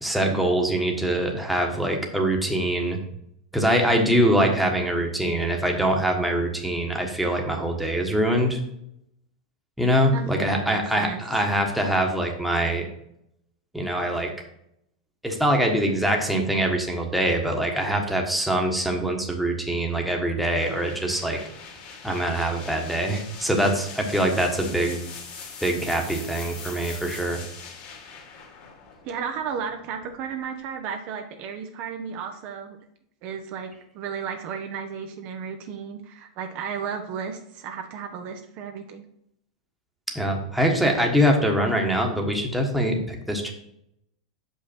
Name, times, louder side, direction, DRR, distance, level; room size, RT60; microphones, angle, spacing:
voice 1, 0.0-3.0 3.5-8.6 9.8-12.9 13.7-14.3 15.2-21.4 22.0-25.0 25.6-27.4 40.1-43.5, right 1 dB, ahead, 1 dB, 1.4 m, -23 dB
voice 2, 10.1-11.2 29.0-32.8 33.2-39.0, right 6 dB, 50° right, 5 dB, 0.8 m, -34 dB
sound 1, 20.5-30.3, left 5 dB, 50° left, 2.4 m, -42 dB
6.3 x 5.5 x 4.4 m, 0.76 s
hypercardioid pair, 115°, 3 cm